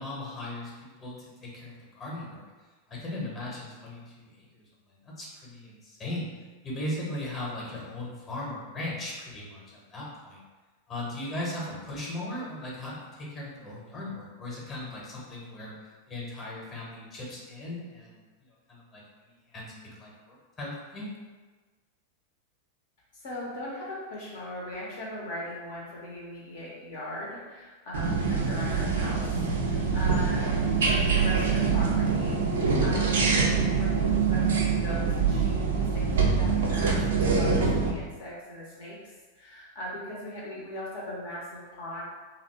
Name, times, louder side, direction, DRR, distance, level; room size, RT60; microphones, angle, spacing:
voice 1, 0.0-2.4 2.9-6.3 6.6-10.4 10.9-15.7 16.1-21.1, left 1 dB, 20° left, -5 dB, 0.8 m, -38 dB
voice 2, 23.1-30.6 30.8-42.0, left 1 dB, 55° left, -5 dB, 0.6 m, -39 dB
sound 1, 27.9-37.9, right 5 dB, 65° right, 0.4 m, -25 dB
2.6 x 2.0 x 3.0 m, 1.3 s
figure-of-eight pair, 90°, 0 cm